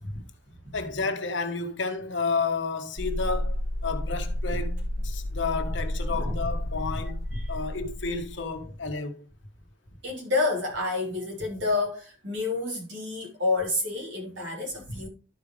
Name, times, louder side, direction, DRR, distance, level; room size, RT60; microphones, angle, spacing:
voice 1, 0.7-9.2, left 4 dB, 75° left, 1.3 m, -31 dB
sound 1, 3.0-8.5, left 1 dB, 50° right, 3.3 m, -31 dB
voice 2, 10.0-15.1, left 3 dB, 70° right, 4.0 m, -29 dB
12.5 x 5.2 x 3.3 m
head